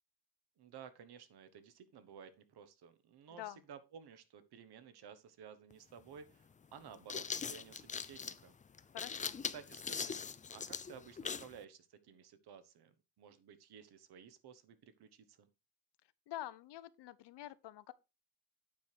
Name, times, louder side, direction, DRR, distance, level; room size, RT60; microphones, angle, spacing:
voice 1, 0.6-8.9 9.5-15.5, right 7 dB, 70° right, 1.3 m, -55 dB
voice 2, 3.3-3.6 8.9-9.4 16.3-17.9, left 13 dB, 85° left, 0.7 m, -47 dB
sound 1, 5.7-5.8 6.8-11.6, left 6 dB, 20° left, 0.3 m, -41 dB
9.1 x 5.1 x 4.5 m
cardioid pair, 140°, 40 cm